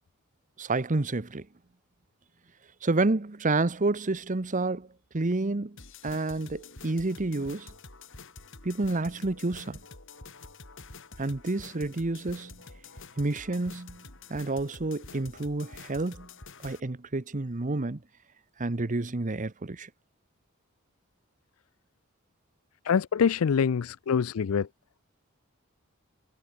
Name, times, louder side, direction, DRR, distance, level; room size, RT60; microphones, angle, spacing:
voice 1, 0.6-1.5 2.8-4.9 5.1-7.7 8.6-9.8 11.2-12.6 13.2-14.0 14.3-16.3 16.6-18.0 18.6-19.9, right 2 dB, 35° right, 0.9 m, -29 dB
sound 1, 5.8-16.8, left 3 dB, 65° left, 4.8 m, -48 dB
voice 2, 22.8-24.7, left 6 dB, 80° left, 0.4 m, -25 dB
head